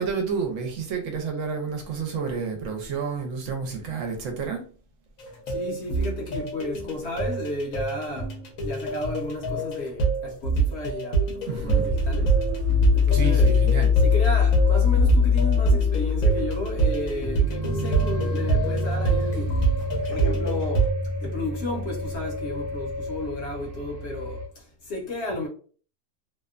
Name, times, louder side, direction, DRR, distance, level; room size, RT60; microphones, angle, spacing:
voice 1, 0.0-4.6 11.5-11.9 13.1-13.9, right 5 dB, 75° right, 1.0 m, -30 dB
sound 1, 5.2-20.9, right 5 dB, 85° left, 1.1 m, -26 dB
voice 2, 5.5-12.4 12.9-13.5 14.0-19.5 20.1-20.9 21.2-25.5, left 2 dB, 60° left, 0.9 m, -33 dB
sound 2, 11.9-24.5, left 6 dB, 55° right, 0.7 m, -24 dB
2.7 x 2.1 x 2.4 m
omnidirectional pair, 1.4 m